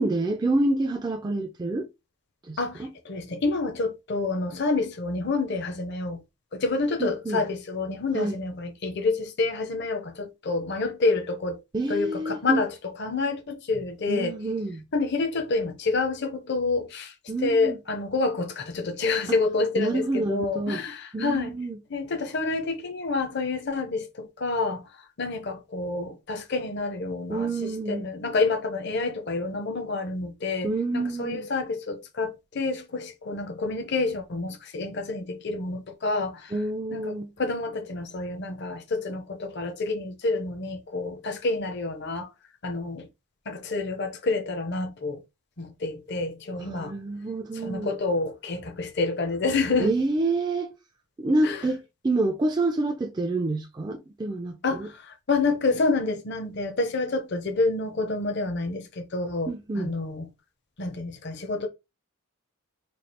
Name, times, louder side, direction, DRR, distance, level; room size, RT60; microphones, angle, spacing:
voice 1, 0.0-1.9 2.5-2.9 7.0-7.4 8.1-8.4 11.7-12.6 14.1-14.8 17.3-17.8 19.3-19.4 19.8-20.8 21.1-21.8 27.3-28.1 30.6-31.5 36.5-37.3 46.6-47.9 49.8-50.7 51.2-54.9 59.5-60.0, right 2 dB, 20° right, 0.4 m, -27 dB
voice 2, 2.6-6.2 6.5-11.6 11.9-12.7 13.0-14.4 14.9-17.1 17.4-21.5 21.9-24.8 25.2-36.5 36.9-42.3 42.6-43.1 43.5-45.2 45.6-46.9 47.6-49.9 51.4-51.6 54.6-60.2 60.8-61.7, left 3 dB, 50° left, 0.7 m, -28 dB
3.2 x 2.4 x 4.2 m
head